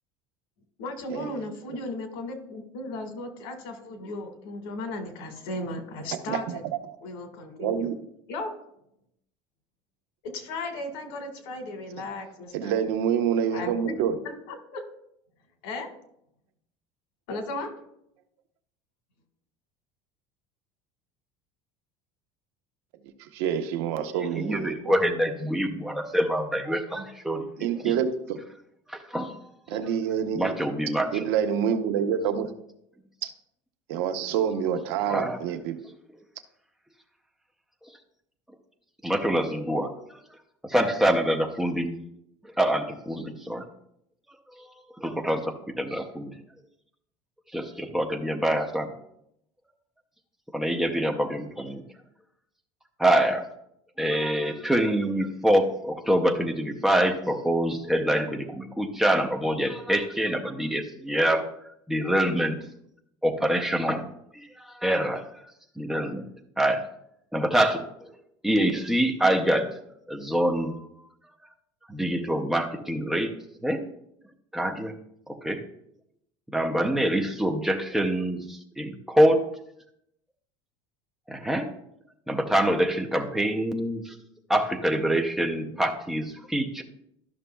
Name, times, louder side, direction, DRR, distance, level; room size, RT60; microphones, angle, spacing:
voice 1, 0.8-6.6 7.0-7.9 8.3-8.5 10.2-12.8 13.5-14.8 15.6-15.9 17.3-17.7, left 2 dB, 90° left, 5 dB, 1.7 m, -36 dB
voice 2, 6.3-6.6 7.6-8.0 12.5-14.2 23.2-24.9 27.6-28.4 29.7-30.5 31.1-32.5 33.2-33.3 33.9-35.8, right 8 dB, 85° right, 8 dB, 0.9 m, -27 dB
voice 3, 24.3-27.9 28.9-29.4 30.3-31.2 35.1-35.4 39.0-39.9 40.6-42.0 42.4-43.6 44.6-44.7 45.0-46.3 47.5-48.9 50.5-51.8 53.0-53.4 54.0-61.4 61.9-62.5 63.2-65.3 65.8-66.2 66.6-66.8 67.3-67.8 68.4-69.7 70.1-70.8 71.9-73.9 74.5-75.0 75.3-75.6 76.5-79.5 81.3-81.7 82.3-84.2 84.5-86.8, right 1 dB, 5° right, 3 dB, 0.6 m, -25 dB
12.5 x 6.2 x 2.3 m, 0.75 s
cardioid pair, 170°, 13 cm